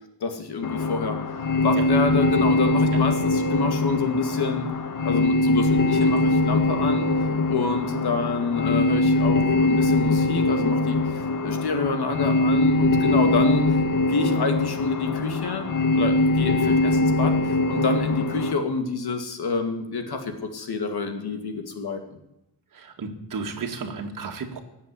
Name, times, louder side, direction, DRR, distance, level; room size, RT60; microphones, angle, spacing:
voice 1, 0.2-4.7 5.0-7.1 7.5-11.0 11.4-13.7 14.1-15.7 15.9-22.0, left 4 dB, 70° left, 6 dB, 2.3 m, -27 dB
sound 1, 0.6-18.5, left 2 dB, 50° left, 1.2 m, -22 dB
voice 2, 22.7-24.6, right 5 dB, 50° right, 2 dB, 2.1 m, -33 dB
17.5 x 7.3 x 9.9 m, 0.86 s
wide cardioid pair, 175°, 41 cm